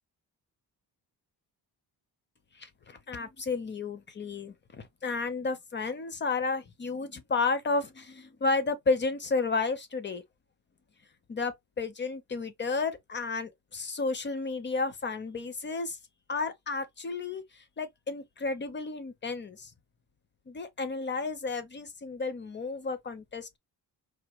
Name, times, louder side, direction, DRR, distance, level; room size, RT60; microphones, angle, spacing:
voice 1, 2.6-10.2 11.3-16.0 16.3-19.7 20.5-23.6, left 4 dB, 25° left, 0.7 m, -32 dB
4.9 x 2.2 x 3.0 m
wide cardioid pair, 145°, 40 cm